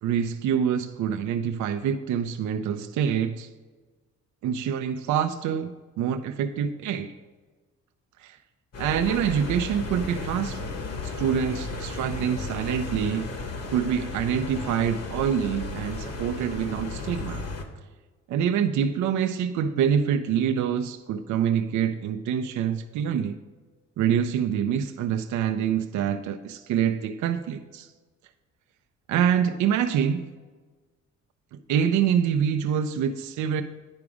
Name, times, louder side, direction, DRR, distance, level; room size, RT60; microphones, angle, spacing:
voice 1, 0.0-3.5 4.4-5.7 6.0-7.1 8.2-8.4 8.8-10.6 11.0-13.3 13.7-17.4 18.3-23.4 24.0-27.9 29.1-30.3 31.5-33.6, right 8 dB, 70° right, 8 dB, 0.5 m, -26 dB
sound 1, 8.7-17.6, left 3 dB, 55° left, 1.2 m, -34 dB
9.6 x 5.0 x 4.9 m, 1.3 s
cardioid pair, 90°, 30 cm